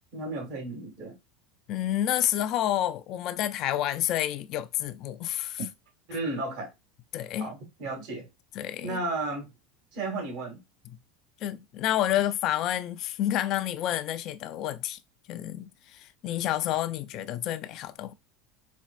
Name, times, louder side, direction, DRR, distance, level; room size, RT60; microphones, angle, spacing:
voice 1, 0.1-1.2 6.1-6.7 7.4-8.3 8.8-9.5 9.9-10.6, right 2 dB, 65° right, 1.5 m, -33 dB
voice 2, 1.7-5.6 7.1-7.5 8.6-9.0 10.9-11.0 11.4-15.0 15.3-18.1, left 12 dB, 55° left, 0.3 m, -29 dB
4.2 x 2.5 x 2.4 m
hypercardioid pair, 95°, 0 cm